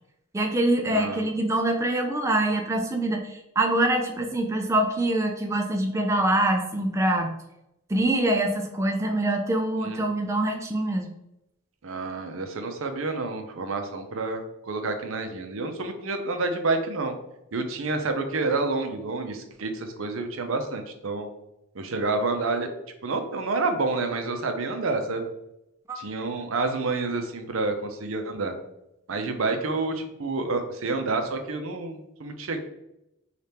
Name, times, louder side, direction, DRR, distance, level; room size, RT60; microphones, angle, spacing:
voice 1, 0.3-7.3 7.9-11.1 25.9-26.0, right 1 dB, 15° right, 2 dB, 0.3 m, -24 dB
voice 2, 0.9-1.2 9.8-10.0 11.8-17.1 17.5-21.3 21.7-22.7 23.0-25.2 26.0-28.5 29.1-32.6, right 3 dB, 75° right, 6 dB, 0.6 m, -29 dB
3.4 x 2.4 x 4.2 m, 0.86 s
head